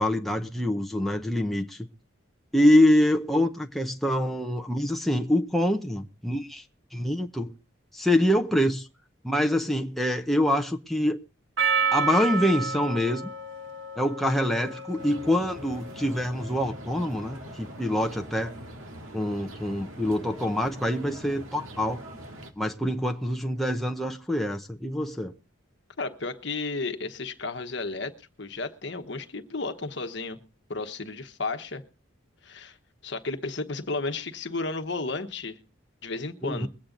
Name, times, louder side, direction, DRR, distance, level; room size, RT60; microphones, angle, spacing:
voice 1, 0.0-1.9 2.5-6.6 6.9-7.5 7.9-8.9 9.2-11.2 11.9-13.3 14.0-18.5 19.1-22.0 22.6-25.3 36.4-36.7, left 1 dB, ahead, 0.7 m, -25 dB
Percussion, 11.6-16.2, right 5 dB, 65° right, 1.7 m, -30 dB
sound 1, 15.0-22.5, right 1 dB, 90° right, 1.8 m, -43 dB
voice 2, 26.0-30.4 30.7-31.8 32.4-32.8 33.0-35.6 36.0-36.7, left 3 dB, 60° left, 1.2 m, -33 dB
22.0 x 8.7 x 3.8 m
head